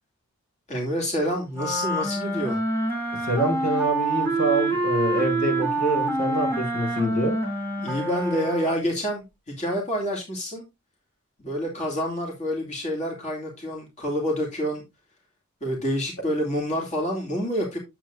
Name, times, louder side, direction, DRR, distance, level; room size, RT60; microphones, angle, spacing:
voice 1, 0.7-2.6 7.8-9.2 9.6-10.6 11.4-14.8 15.6-17.8, equal, 35° left, 2.7 m, -27 dB
sound 1, 1.5-8.9, right 2 dB, 10° left, 2.8 m, -26 dB
voice 2, 3.2-7.4, right 2 dB, 70° left, 4.4 m, -26 dB
10.5 x 7.6 x 2.6 m
head